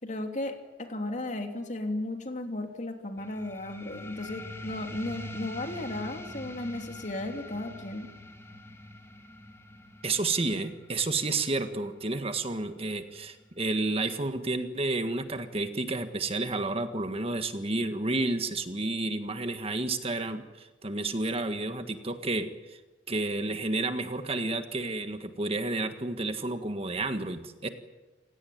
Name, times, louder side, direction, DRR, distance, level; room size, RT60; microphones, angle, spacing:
voice 1, 0.0-8.1, left 1 dB, 40° left, 5 dB, 3.1 m, -35 dB
sound 1, 3.2-14.2, left 1 dB, 15° left, 2.6 m, -45 dB
voice 2, 10.0-22.8 23.1-27.7, right 2 dB, 35° right, 8 dB, 1.7 m, -31 dB
28.5 x 17.5 x 9.4 m, 1.2 s
head